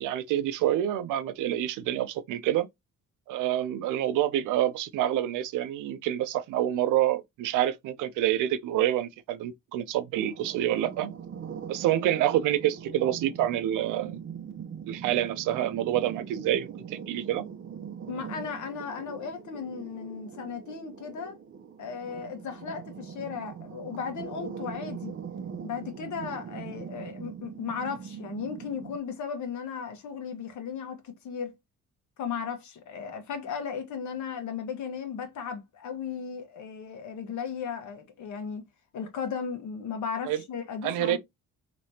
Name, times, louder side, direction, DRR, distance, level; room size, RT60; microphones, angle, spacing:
voice 1, 0.0-2.7 3.3-11.1 11.7-14.2 14.9-17.4 40.3-40.4 40.8-41.2, right 12 dB, 85° right, 0.5 m, -27 dB
sound 1, 10.1-29.0, right 7 dB, 40° right, 0.6 m, -41 dB
voice 2, 18.1-21.4 21.8-25.1 25.6-31.5 32.2-38.6 38.9-41.2, left 6 dB, 75° left, 1.1 m, -36 dB
3.2 x 2.9 x 2.7 m
cardioid pair, 90°, 30 cm